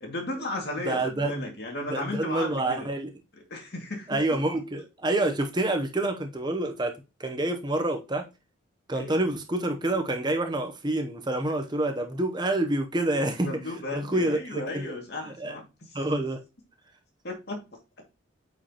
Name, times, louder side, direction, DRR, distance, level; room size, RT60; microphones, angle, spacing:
voice 1, 0.0-2.9 3.5-4.2 9.0-9.2 13.4-15.7 15.9-16.1 17.2-17.6, left 2 dB, 50° left, 2.3 m, -35 dB
voice 2, 0.9-1.4 1.9-3.1 4.1-6.9 7.2-8.2 8.9-14.9 15.3-15.5 15.9-16.4, right 2 dB, 20° right, 0.7 m, -27 dB
8.9 x 5.1 x 2.9 m
head